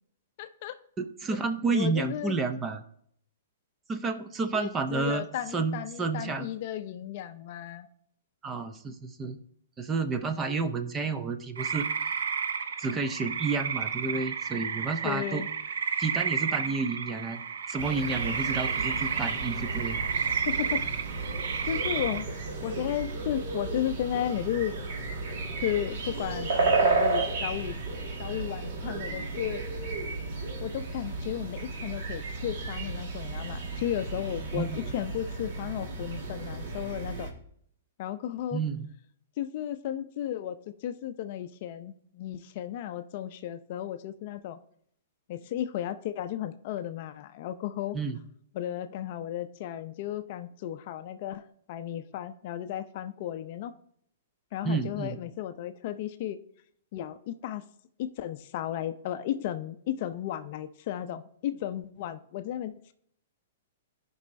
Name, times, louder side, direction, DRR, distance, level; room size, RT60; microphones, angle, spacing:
voice 1, 0.4-0.8 1.3-1.4 1.7-2.3 4.5-7.9 15.0-15.5 20.5-20.8 21.7-22.3 22.6-24.7 25.6-27.8 28.2-29.6 30.6-37.3 38.0-38.6 39.4-44.6 45.3-48.0 48.5-53.7 54.5-56.4 56.9-57.6 58.0-62.9, left 11 dB, 40° left, 10 dB, 0.5 m, -34 dB
voice 2, 1.0-2.8 3.9-5.2 5.5-6.5 8.4-9.4 9.8-11.9 12.8-15.4 16.0-17.4 17.7-20.0 34.5-34.9 38.5-38.9 47.9-48.2 54.6-55.2, right 4 dB, 15° right, 8 dB, 0.5 m, -30 dB
sound 1, 11.6-22.2, right 6 dB, 80° right, 0.6 m, -32 dB
sound 2, 17.8-37.3, right 3 dB, 50° right, 1.6 m, -33 dB
16.0 x 5.4 x 2.6 m, 0.67 s
hypercardioid pair, 165°, 0 cm